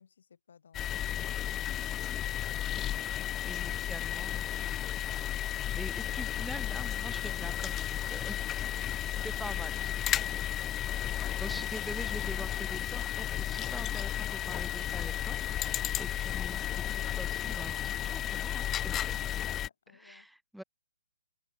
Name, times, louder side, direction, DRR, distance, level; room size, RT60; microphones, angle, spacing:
voice 1, 0.0-1.5 18.9-20.3, left 7 dB, 60° left, 3.4 m, -62 dB
sound 1, 0.7-19.7, left 11 dB, 15° left, 0.5 m, -33 dB
voice 2, 3.4-8.4 8.8-10.8 11.2-15.4 15.6-19.2 19.9-20.6, right 1 dB, ahead, 1.3 m, -45 dB
open air
figure-of-eight pair, 130°, 0 cm